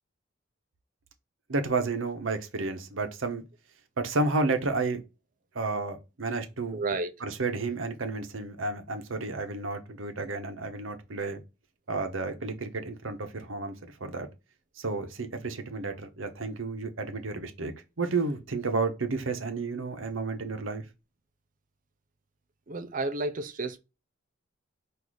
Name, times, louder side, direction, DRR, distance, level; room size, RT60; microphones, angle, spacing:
voice 1, 1.5-3.4 4.0-5.0 5.5-6.8 7.2-11.4 11.9-13.7 14.0-14.3 14.8-20.8, right 3 dB, 80° right, 0.9 m, -31 dB
voice 2, 6.7-7.1 22.7-23.8, right 3 dB, 40° right, 0.6 m, -31 dB
4.8 x 2.7 x 4.0 m
head